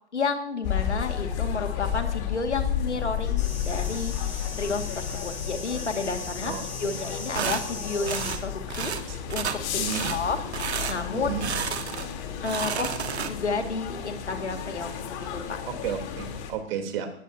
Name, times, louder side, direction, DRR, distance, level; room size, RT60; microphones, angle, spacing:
voice 1, 0.1-6.5 6.8-9.6 10.1-11.8 12.4-15.6, left 4 dB, 85° left, 6 dB, 2.3 m, -32 dB
sound 1, 0.6-16.5, left 9 dB, 45° left, 3.6 m, -32 dB
sound 2, 3.4-8.4, left 3 dB, 25° left, 4.8 m, -37 dB
voice 2, 6.4-6.9 9.1-9.2 9.8-10.1 11.1-11.5 15.6-17.1, right 8 dB, 55° right, 4 dB, 3.6 m, -33 dB
sound 3, 7.3-7.6 8.1-8.4 8.7-9.0 9.3-9.6 9.9-10.2 10.5-11.0 11.4-12.1 12.4-13.5, right 7 dB, 75° right, 1.7 m, -31 dB
19.0 x 18.5 x 2.9 m, 0.68 s
figure-of-eight pair, 105°, 33 cm